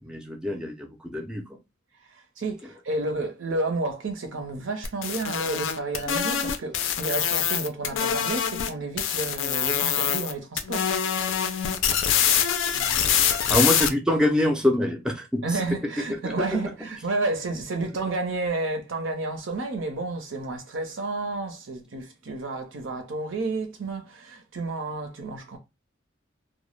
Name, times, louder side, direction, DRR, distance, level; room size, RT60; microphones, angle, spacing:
voice 1, 0.0-1.6 13.5-15.6 16.1-16.3, left 1 dB, 5° right, 0.4 m, -25 dB
voice 2, 2.4-10.9 12.7-13.4 15.4-25.6, right 2 dB, 75° right, 0.6 m, -31 dB
sound 1, 4.8-8.7 9.0-10.3 10.6-13.9, left 8 dB, 75° left, 0.4 m, -24 dB
2.1 x 2.0 x 3.1 m
head